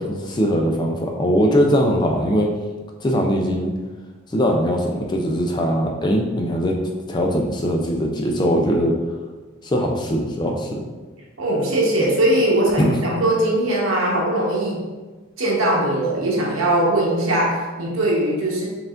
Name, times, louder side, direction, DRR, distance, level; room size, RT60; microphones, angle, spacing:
voice 1, 0.1-2.5 3.0-3.7 4.3-6.8 7.1-9.0 9.6-10.8 12.0-12.1 12.8-13.0, equal, 20° left, 1 dB, 0.4 m, -20 dB
voice 2, 11.4-14.8 15.4-18.7, right 1 dB, 85° right, -3 dB, 1.1 m, -20 dB
4.6 x 3.6 x 2.5 m, 1.3 s
head